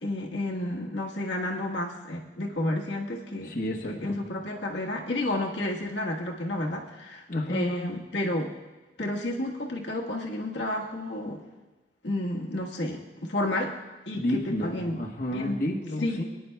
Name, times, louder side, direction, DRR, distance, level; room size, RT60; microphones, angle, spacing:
voice 1, 0.0-3.5 3.9-8.5 9.0-11.4 12.0-13.7 14.1-15.0 15.3-15.6 16.0-16.2, left 1 dB, 90° left, -1 dB, 1.4 m, -31 dB
voice 2, 3.4-4.1 7.3-7.9 14.1-16.2, left 1 dB, 50° left, -1 dB, 1.1 m, -30 dB
22.5 x 10.0 x 2.3 m, 1.2 s
head